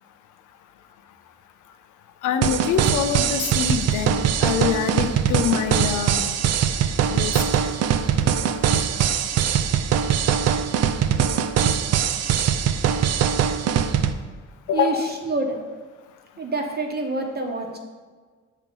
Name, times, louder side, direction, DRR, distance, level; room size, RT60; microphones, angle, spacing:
voice 1, 2.2-6.4 7.1-7.4 14.7-15.1, left 8 dB, 80° left, 9 dB, 0.5 m, -25 dB
sound 1, 2.4-14.1, right 8 dB, 60° right, 0.4 m, -22 dB
voice 2, 14.7-15.6 16.4-17.8, right 3 dB, 30° right, 2 dB, 1.1 m, -28 dB
6.9 x 3.1 x 5.3 m, 1.5 s
cardioid pair, 90°, 30 cm